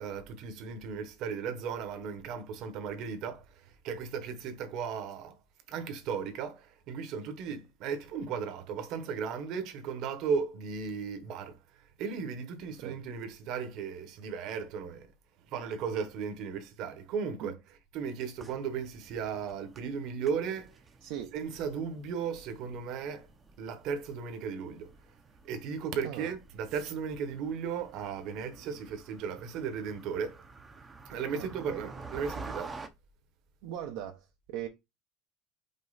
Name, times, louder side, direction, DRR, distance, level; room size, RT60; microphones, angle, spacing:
voice 1, 0.0-3.4 3.8-5.4 5.7-11.6 12.0-15.1 15.5-20.7 21.3-23.3 23.6-24.9 25.4-30.4 31.1-32.8, right 6 dB, 50° right, 1.1 m, -36 dB
sound 1, 18.4-32.9, right 3 dB, 15° right, 0.6 m, -50 dB
voice 2, 21.0-21.3 26.0-26.4 31.3-31.9 33.6-34.7, right 10 dB, 65° right, 0.8 m, -40 dB
5.4 x 4.4 x 4.0 m
cardioid pair, 180°, 0 cm